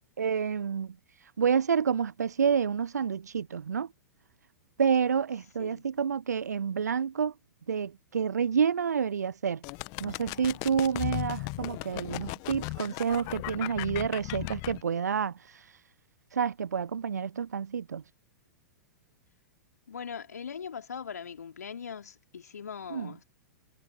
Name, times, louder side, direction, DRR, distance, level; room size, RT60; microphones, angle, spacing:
voice 1, 0.2-0.9 1.4-3.9 4.8-7.3 7.7-9.6 10.0-15.3 16.3-18.0 22.9-23.1, right 7 dB, 70° right, 0.7 m, -29 dB
voice 2, 5.6-6.0 19.9-23.2, left 6 dB, 65° left, 3.6 m, -41 dB
sound 1, 9.6-14.8, left 33 dB, 35° left, 1.5 m, -36 dB
figure-of-eight pair, 100°, 9 cm